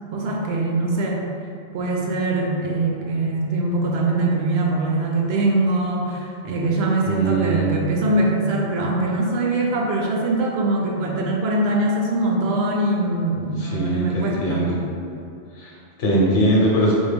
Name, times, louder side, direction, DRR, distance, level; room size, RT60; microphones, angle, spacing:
voice 1, 0.1-1.2 1.7-14.8, right 2 dB, 65° right, -1 dB, 0.8 m, -22 dB
voice 2, 7.1-7.7 13.6-14.8 15.5-16.9, right 1 dB, 80° left, -4 dB, 1.2 m, -21 dB
4.1 x 2.3 x 3.3 m, 2.5 s
omnidirectional pair, 1.2 m